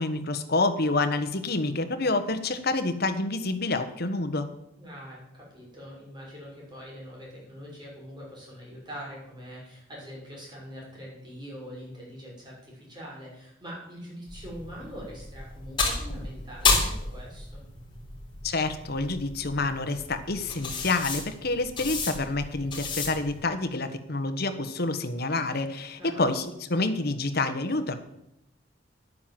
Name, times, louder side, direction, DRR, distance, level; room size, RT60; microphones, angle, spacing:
voice 1, 0.0-4.5 18.4-28.0, left 2 dB, 55° left, 9 dB, 1.3 m, -28 dB
voice 2, 4.8-17.6 26.0-26.3, equal, 25° right, -4 dB, 6.1 m, -43 dB
sound 1, 14.3-23.4, left 4 dB, 25° left, 3.8 m, -32 dB
11.5 x 9.4 x 7.7 m, 0.81 s
head